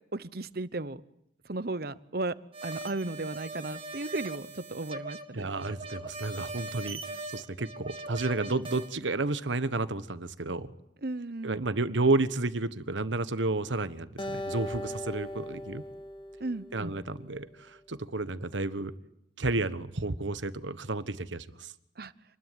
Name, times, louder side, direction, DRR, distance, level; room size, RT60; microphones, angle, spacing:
voice 1, 0.1-1.0 1.4-2.4 2.6-5.5 11.0-11.6 16.4-17.0 22.0-22.1, right 2 dB, 55° right, 15 dB, 1.0 m, -35 dB
sound 1, 2.5-8.9, right 3 dB, 30° right, 2.1 m, -41 dB
voice 2, 5.3-7.0 7.3-10.7 11.4-15.8 16.7-18.9 19.4-21.7, right 2 dB, 85° right, 13 dB, 1.3 m, -31 dB
Acoustic guitar, 14.2-17.5, left 1 dB, 25° left, 1.5 m, -39 dB
27.5 x 20.5 x 9.5 m, 0.77 s
head